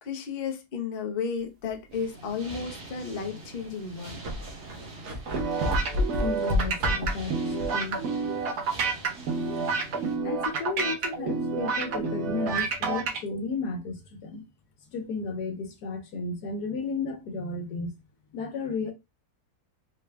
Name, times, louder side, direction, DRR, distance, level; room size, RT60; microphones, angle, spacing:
voice 1, 0.0-4.2, left 6 dB, 45° left, 0.8 m, -33 dB
sound 1, 1.7-2.0 2.6-2.7 3.6-3.7 3.9-7.9 8.2-8.3 11.9-12.0, left 1 dB, 60° right, 1.2 m, -30 dB
sound 2, 1.9-10.2, right 2 dB, 40° right, 1.3 m, -44 dB
sound 3, 5.3-13.2, right 4 dB, 75° right, 1.5 m, -29 dB
voice 2, 6.2-8.1 10.2-14.4 14.9-17.9 18.3-18.9, left 4 dB, 80° left, 1.4 m, -33 dB
4.0 x 2.3 x 3.3 m
omnidirectional pair, 1.7 m